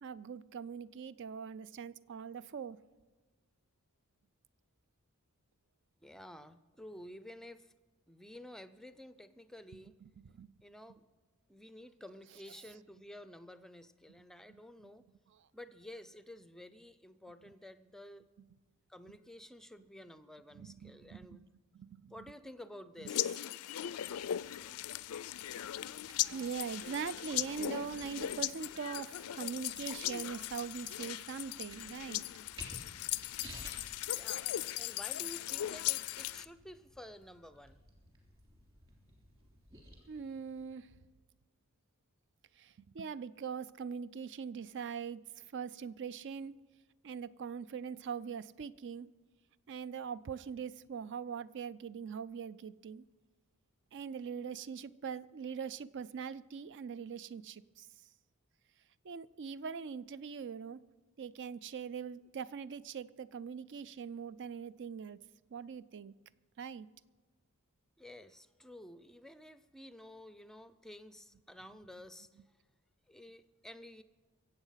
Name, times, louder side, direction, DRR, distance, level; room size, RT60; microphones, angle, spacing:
voice 1, 0.0-2.8 10.0-10.5 15.3-15.5 20.5-21.5 21.7-22.1 23.0-23.1 26.3-32.4 40.1-40.9 42.6-46.6 47.0-49.1 49.7-53.0 53.9-57.9 59.0-60.8 61.2-65.2 65.5-66.1 66.6-66.9, right 6 dB, 55° right, 17 dB, 0.4 m, -42 dB
voice 2, 6.0-7.7 8.1-9.9 10.6-11.1 11.5-15.1 15.5-18.2 18.9-21.5 22.1-23.4 34.1-37.8 68.0-72.3 73.1-74.0, left 1 dB, ahead, 13 dB, 0.4 m, -51 dB
sound 1, 23.1-36.4, left 13 dB, 75° left, 0.4 m, -38 dB
sound 2, 23.8-40.7, right 1 dB, 25° right, 3.3 m, -57 dB
23.0 x 8.0 x 5.7 m, 1.3 s
head